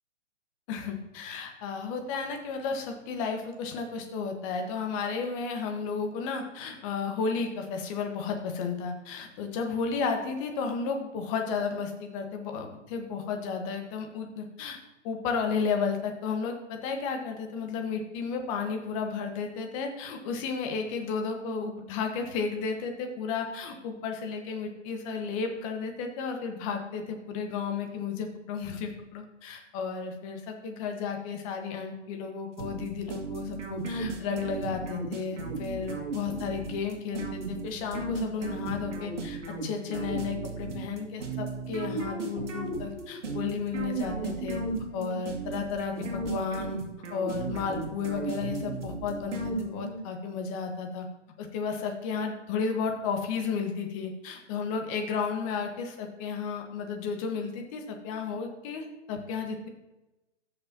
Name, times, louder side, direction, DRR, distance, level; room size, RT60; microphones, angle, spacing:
voice 1, 0.7-14.8 15.0-44.6 44.9-46.8 47.1-51.1 51.4-59.7, left 5 dB, 25° left, 4 dB, 1.3 m, -33 dB
sound 1, 32.6-50.1, right 3 dB, 70° right, 2.1 m, -35 dB
15.0 x 6.5 x 2.8 m, 0.99 s
figure-of-eight pair, 135°, 36 cm